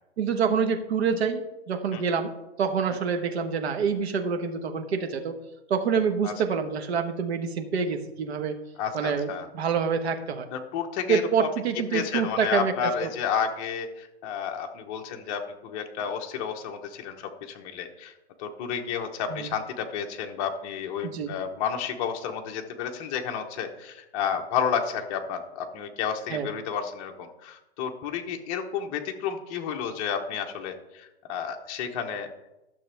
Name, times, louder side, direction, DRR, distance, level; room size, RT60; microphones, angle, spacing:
voice 1, 0.2-2.3 2.6-5.3 5.7-8.6 8.9-9.3 9.5-10.5 11.1-13.1 19.3-19.5 21.0-21.3 26.3-26.5, right 6 dB, 70° right, 6 dB, 1.3 m, -26 dB
voice 2, 8.8-9.5 10.5-11.5 11.9-18.1 18.4-32.3, left 7 dB, 30° left, 4 dB, 1.0 m, -31 dB
12.0 x 7.1 x 3.4 m, 0.95 s
hypercardioid pair, 155°, 33 cm